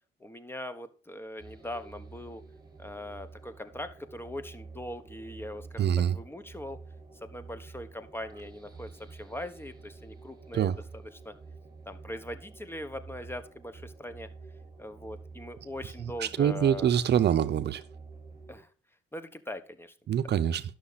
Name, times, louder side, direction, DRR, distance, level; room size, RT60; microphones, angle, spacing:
voice 1, 0.2-2.4 2.8-6.8 7.2-11.3 11.9-14.3 14.8-16.9 18.5-18.7 19.1-19.9, left 1 dB, 10° left, 1.2 m, -41 dB
sound 1, 1.4-18.6, right 4 dB, 20° right, 3.6 m, -49 dB
voice 2, 5.8-6.2 10.5-10.8 16.2-17.8 20.1-20.6, right 9 dB, 60° right, 0.7 m, -25 dB
11.5 x 6.6 x 4.1 m
cardioid pair, 90°, 20 cm